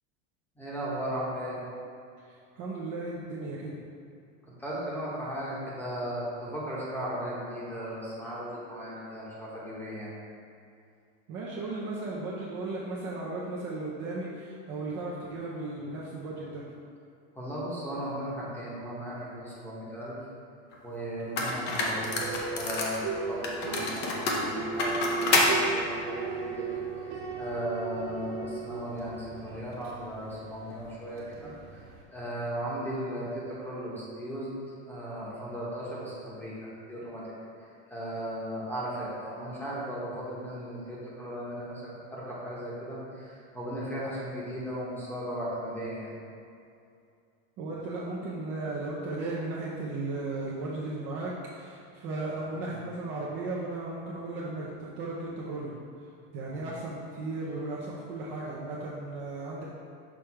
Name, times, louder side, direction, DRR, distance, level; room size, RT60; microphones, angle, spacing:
voice 1, 0.6-1.6 4.6-10.2 17.4-20.2 20.8-26.8 27.4-31.8 32.1-34.5 34.9-37.2 37.9-46.1 52.5-52.8 56.5-56.7, equal, 5° left, -7 dB, 1.0 m, -36 dB
voice 2, 2.3-3.7 11.3-16.6 47.6-55.7 56.3-59.6, right 2 dB, 35° right, -5 dB, 0.6 m, -35 dB
sound 1, 20.7-20.8 21.4-23.0 23.4-25.5, left 3 dB, 30° left, 0.6 m, -27 dB
sound 2, 21.8-32.0, right 4 dB, 55° right, 1.3 m, -37 dB
6.1 x 3.3 x 4.6 m, 2.4 s
supercardioid pair, 170°, 36 cm